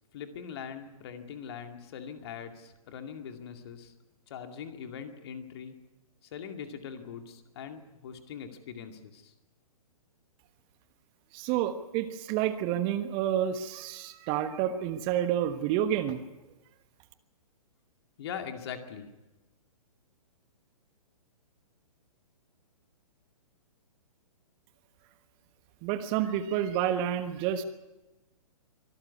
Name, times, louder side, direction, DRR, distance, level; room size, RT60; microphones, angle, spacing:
voice 1, 0.1-3.9 4.3-5.8 6.2-9.3 18.2-19.1, left 7 dB, 45° left, 6 dB, 2.4 m, -42 dB
voice 2, 11.3-16.2 25.8-27.6, right 10 dB, 25° right, 10 dB, 1.2 m, -29 dB
24.0 x 13.5 x 9.5 m, 1.1 s
figure-of-eight pair, 120°, 19 cm